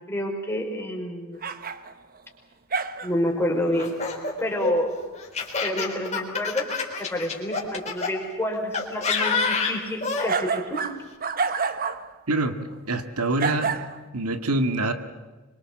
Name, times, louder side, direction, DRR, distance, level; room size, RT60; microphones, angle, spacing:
voice 1, 0.1-1.4 3.0-4.0 4.4-5.0 5.6-6.7 7.0-10.8, left 1 dB, 10° left, 1 dB, 5.0 m, -28 dB
sound 1, 1.4-2.2 2.7-3.3 10.3-12.1 12.7-12.8 13.4-14.0, right 5 dB, 40° right, 1.1 m, -28 dB
Laughter, 3.7-8.1 8.7-10.3, left 4 dB, 30° left, 4.0 m, -27 dB
voice 2, 12.3-13.9 14.1-14.9, right 2 dB, 90° right, 8 dB, 1.9 m, -25 dB
26.0 x 24.0 x 7.6 m, 1.3 s
head